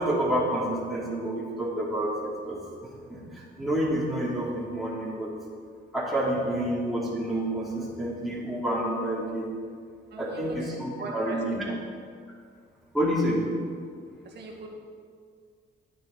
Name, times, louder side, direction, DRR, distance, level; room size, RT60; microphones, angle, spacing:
voice 1, 0.0-2.6 3.1-5.3 5.9-9.5 10.2-11.6 12.9-13.4, right 1 dB, ahead, -6 dB, 3.0 m, -28 dB
voice 2, 10.7-11.8 14.3-14.7, right 1 dB, 60° right, 1 dB, 2.0 m, -39 dB
10.5 x 9.4 x 4.5 m, 2.1 s
cardioid pair, 90°, 20 cm